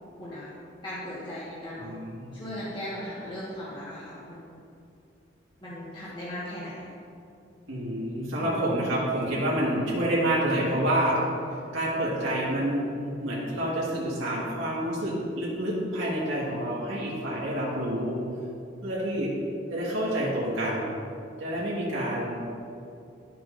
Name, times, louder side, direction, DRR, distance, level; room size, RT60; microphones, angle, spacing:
voice 1, 0.2-1.9 2.3-4.4 5.6-6.9 8.4-8.6, left 1 dB, 25° left, -9 dB, 1.5 m, -38 dB
voice 2, 1.8-2.3 7.7-11.2 11.7-12.8 13.2-18.2 18.8-19.3 19.7-20.8 21.4-22.3, right 1 dB, 90° right, -7 dB, 1.9 m, -28 dB
12.0 x 7.7 x 2.6 m, 2.6 s
head